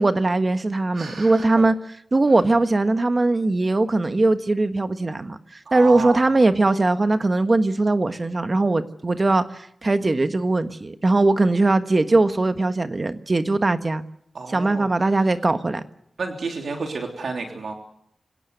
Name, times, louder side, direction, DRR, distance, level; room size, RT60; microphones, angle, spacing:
voice 1, 0.0-1.7 2.1-5.4 5.7-14.0 14.5-15.8, right 2 dB, 35° right, 1.4 m, -20 dB
voice 2, 0.9-1.6 5.6-6.3 14.3-14.9 16.2-17.8, right 4 dB, 80° right, 3.2 m, -31 dB
25.5 x 17.5 x 8.0 m
wide cardioid pair, 110°, 0 cm